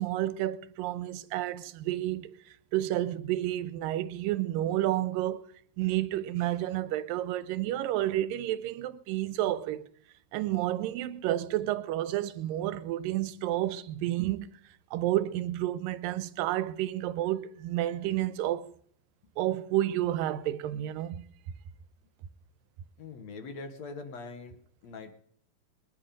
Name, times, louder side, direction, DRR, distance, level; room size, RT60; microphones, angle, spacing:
voice 1, 0.0-5.4 5.8-9.8 10.3-14.5 14.9-18.7 19.4-21.3, right 14 dB, 90° right, 2.4 m, -30 dB
voice 2, 23.0-24.6 24.8-25.1, left 4 dB, 60° left, 2.1 m, -42 dB
20.5 x 10.5 x 5.1 m
omnidirectional pair, 3.9 m